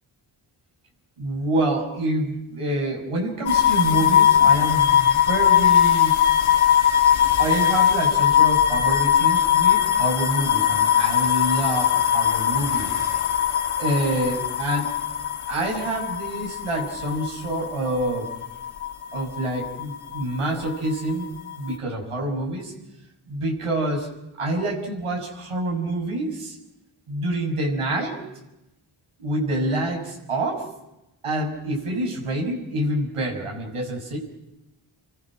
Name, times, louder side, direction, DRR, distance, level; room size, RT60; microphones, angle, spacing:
voice 1, 1.2-6.1 7.4-12.9 13.8-14.9 15.5-18.3 19.1-22.7 23.3-24.1 24.4-26.6 27.1-28.2 29.2-30.7 31.2-34.2, right 1 dB, 90° right, 1 dB, 6.2 m, -27 dB
sound 1, 3.5-20.4 20.7-21.7, left 9 dB, 85° left, 1.5 m, -20 dB
30.0 x 24.5 x 6.2 m, 0.92 s
cardioid pair, 50°, 50 cm